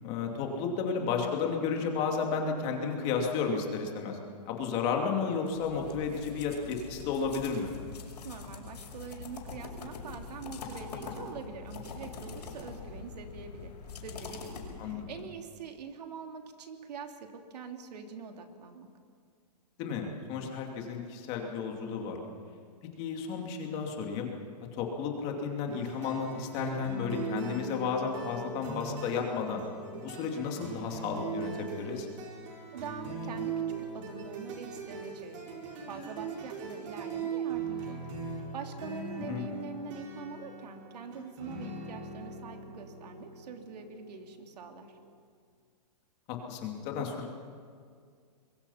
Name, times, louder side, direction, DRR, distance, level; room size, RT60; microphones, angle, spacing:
voice 1, 0.0-4.2 4.5-7.7 14.8-15.1 19.8-22.2 23.0-24.3 24.7-29.6 29.9-32.1 39.3-39.4 46.3-47.3, left 5 dB, 30° left, 2 dB, 2.7 m, -33 dB
sound 1, 5.5-15.2, left 4 dB, 75° left, 6.1 m, -44 dB
voice 2, 8.2-13.7 14.0-18.9 32.7-35.6 35.9-45.0, right 5 dB, 75° right, 4 dB, 3.0 m, -44 dB
sound 2, 25.7-45.1, right 4 dB, 50° right, 4.7 m, -40 dB
24.5 x 22.5 x 5.8 m, 2.1 s
hypercardioid pair, 165°, 21 cm